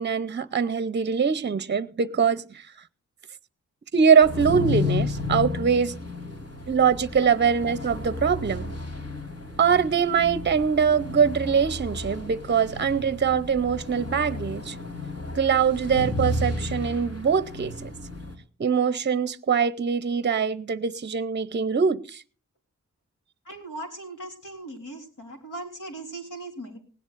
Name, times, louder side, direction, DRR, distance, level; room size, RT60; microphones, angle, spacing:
voice 1, 0.0-2.6 3.9-6.0 6.7-8.7 9.6-14.8 15.3-17.9 18.6-22.2, right 6 dB, 35° right, 0.6 m, -23 dB
sound 1, 4.2-18.3, left 2 dB, 50° left, 3.3 m, -32 dB
voice 2, 23.5-26.8, right 1 dB, 85° left, 3.6 m, -38 dB
20.0 x 16.5 x 2.5 m
wide cardioid pair, 80°, 31 cm